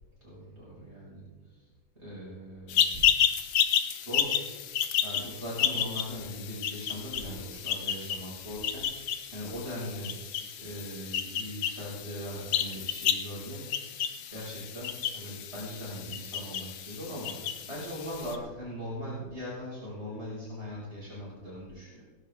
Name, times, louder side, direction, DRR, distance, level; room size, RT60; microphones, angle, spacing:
voice 1, 0.2-1.3 2.0-2.9 3.6-4.5 5.0-10.2 10.6-14.0 14.3-22.0, equal, 30° right, -7 dB, 5.9 m, -40 dB
sound 1, 2.7-18.4, left 9 dB, 75° left, 1.5 m, -31 dB
19.0 x 11.0 x 3.6 m, 1.2 s
omnidirectional pair, 2.1 m